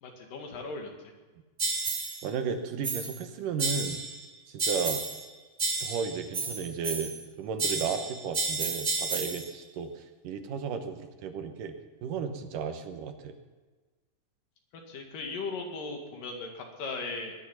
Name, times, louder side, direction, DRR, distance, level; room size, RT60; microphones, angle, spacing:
voice 1, 0.0-0.9 14.9-17.4, left 3 dB, 75° left, 2 dB, 3.7 m, -37 dB
sound 1, 1.6-2.2 2.8-3.2 3.6-4.2 4.6-5.3 5.6-7.2 7.6-9.5, right 3 dB, 35° right, 1.0 m, -31 dB
voice 2, 2.2-4.0 4.5-5.0 5.8-11.7 12.0-13.3, right 6 dB, 75° right, 6 dB, 2.7 m, -34 dB
20.0 x 10.5 x 5.8 m, 1.3 s
omnidirectional pair, 3.9 m